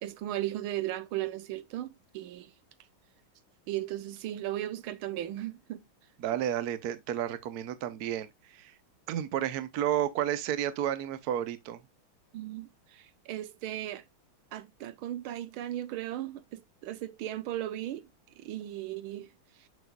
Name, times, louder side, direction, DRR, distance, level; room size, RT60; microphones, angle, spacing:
voice 1, 0.0-2.5 3.7-5.8 12.3-14.0 14.5-18.1 18.4-19.3 19.6-19.7, right 13 dB, 80° right, 1.6 m, -36 dB
voice 2, 6.2-8.7 9.1-11.8, right 10 dB, 60° right, 1.1 m, -31 dB
6.7 x 6.5 x 2.3 m
omnidirectional pair, 2.3 m